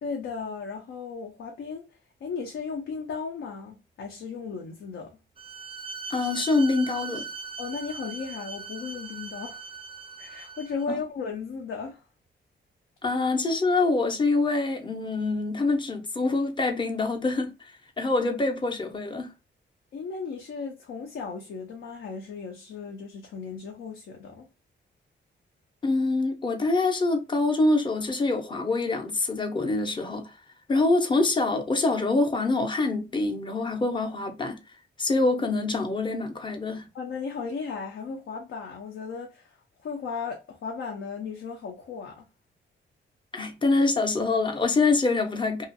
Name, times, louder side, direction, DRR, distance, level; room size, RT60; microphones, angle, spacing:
voice 1, 0.0-5.2 7.6-9.7 10.2-12.0 19.9-24.5 36.9-42.3, left 5 dB, 80° left, 0.6 m, -36 dB
Bowed string instrument, 5.4-10.9, right 5 dB, 30° right, 0.3 m, -40 dB
voice 2, 6.1-7.3 10.9-11.0 13.0-17.5 18.0-19.3 25.8-30.3 30.7-34.6 35.0-36.9 43.3-45.7, left 3 dB, 25° left, 0.6 m, -25 dB
2.7 x 2.4 x 2.5 m
wide cardioid pair, 135°, 20 cm